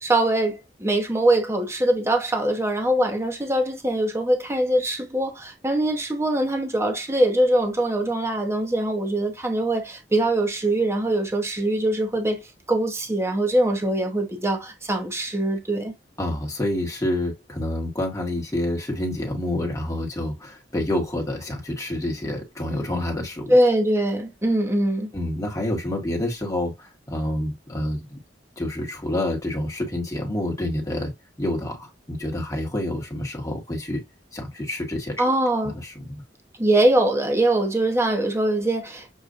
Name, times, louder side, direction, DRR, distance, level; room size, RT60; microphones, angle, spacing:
voice 1, 0.0-12.4 12.7-15.9 23.5-25.1 35.2-35.8 36.6-39.1, right 1 dB, 15° right, 0.8 m, -22 dB
voice 2, 16.2-23.6 25.1-28.2 28.6-31.1 31.4-34.0 34.3-35.2 35.6-36.2, left 1 dB, 20° left, 1.3 m, -28 dB
6.4 x 2.5 x 2.5 m
head